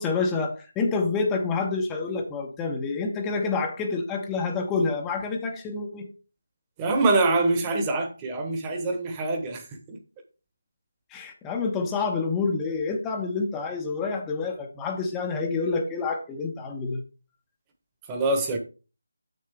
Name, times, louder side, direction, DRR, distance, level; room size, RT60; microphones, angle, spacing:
voice 1, 0.0-6.1 11.1-17.0, left 4 dB, 10° left, 0.7 m, -28 dB
voice 2, 6.8-10.0 18.1-18.6, right 2 dB, 15° right, 1.0 m, -25 dB
6.6 x 6.6 x 3.4 m
figure-of-eight pair, 170°, 0 cm